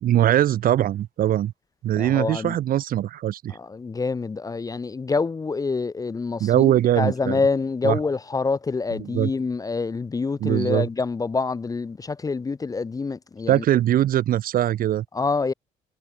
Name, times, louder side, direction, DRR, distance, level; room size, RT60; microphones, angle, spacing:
voice 1, 0.0-1.5 1.8-3.6 6.4-7.4 7.8-8.0 9.0-9.3 10.4-10.9 13.5-15.0, right 12 dB, 55° right, 0.7 m, -21 dB
voice 2, 2.0-2.6 3.5-13.6 15.1-15.5, left 4 dB, 20° left, 0.6 m, -26 dB
cardioid pair, 95°, 17 cm